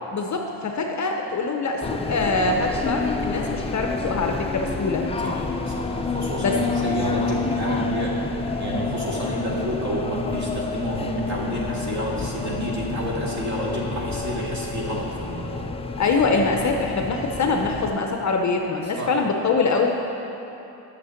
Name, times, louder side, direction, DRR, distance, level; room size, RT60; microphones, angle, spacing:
voice 1, 0.1-5.0 6.4-6.6 16.0-20.0, left 3 dB, 35° left, 2 dB, 0.7 m, -24 dB
sound 1, 1.8-17.9, left 4 dB, 15° left, 0.4 m, -29 dB
voice 2, 5.2-8.3 8.6-15.6 19.0-19.1, equal, 35° right, -3 dB, 2.0 m, -29 dB
8.4 x 6.6 x 6.4 m, 3.0 s
cardioid pair, 110°, 48 cm